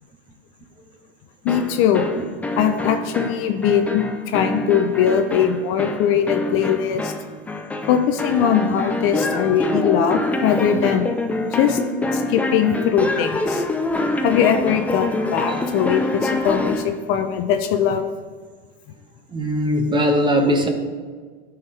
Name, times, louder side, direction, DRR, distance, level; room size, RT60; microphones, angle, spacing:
voice 1, 1.4-2.1 2.6-7.1 7.9-11.1 11.5-11.8 12.1-13.6 14.2-18.0, left 8 dB, 45° left, 7 dB, 0.6 m, -20 dB
sound 1, 1.5-16.9, left 2 dB, 5° left, 0.3 m, -25 dB
voice 2, 19.3-20.7, equal, 15° right, 4 dB, 0.9 m, -20 dB
12.5 x 4.7 x 3.3 m, 1.5 s
hypercardioid pair, 115°, 31 cm